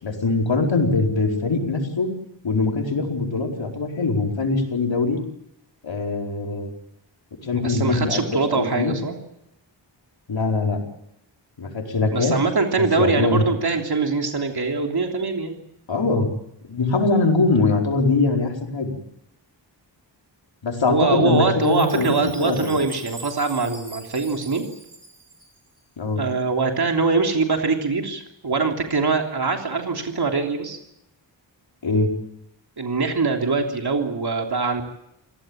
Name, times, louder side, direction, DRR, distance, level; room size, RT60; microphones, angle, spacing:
voice 1, 0.0-2.1 2.4-5.2 5.8-6.8 7.4-8.9 10.3-10.8 11.6-12.4 12.8-13.4 15.9-16.3 16.6-19.0 20.6-22.7 26.0-26.2 31.8-32.1, left 3 dB, 90° left, 1 dB, 4.7 m, -22 dB
voice 2, 7.5-9.1 12.1-15.5 20.9-24.7 26.2-30.8 32.8-34.8, right 4 dB, 60° right, 2 dB, 3.3 m, -23 dB
Chime, 21.6-25.8, right 3 dB, 35° right, 5.3 m, -43 dB
26.5 x 17.5 x 8.9 m, 0.82 s
wide cardioid pair, 80°, 44 cm